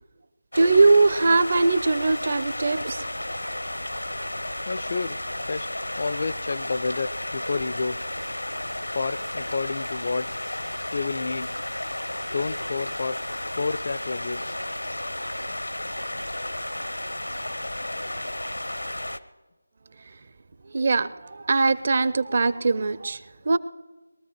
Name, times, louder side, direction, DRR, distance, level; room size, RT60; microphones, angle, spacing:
sound 1, 0.5-19.2, left 1 dB, 80° left, 0.9 m, -33 dB
voice 1, 0.5-3.0 20.7-23.6, right 3 dB, 40° right, 0.6 m, -21 dB
voice 2, 4.6-5.2 5.5-5.7 6.0-8.0 8.9-10.3 10.9-11.5 12.3-13.2 13.6-14.6, left 4 dB, 40° left, 0.4 m, -29 dB
22.0 x 13.5 x 3.1 m
figure-of-eight pair, 160°, 0 cm